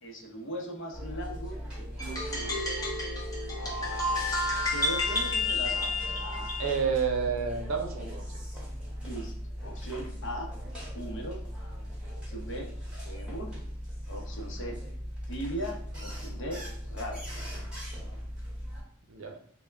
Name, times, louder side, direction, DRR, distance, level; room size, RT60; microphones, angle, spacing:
voice 1, 0.0-2.5 4.7-6.6 9.0-9.3 9.6-10.5 10.9-11.4 12.3-12.7 13.0-13.5 14.1-14.8 15.3-17.2, equal, 65° left, 1 dB, 0.8 m, -39 dB
sound 1, 0.9-18.8, equal, 5° right, 0.9 m, -39 dB
sound 2, 2.0-6.7, left 2 dB, 15° left, 0.7 m, -31 dB
voice 2, 6.6-8.4 19.1-19.4, right 6 dB, 70° right, 3 dB, 0.6 m, -30 dB
3.4 x 2.2 x 3.3 m, 0.63 s
head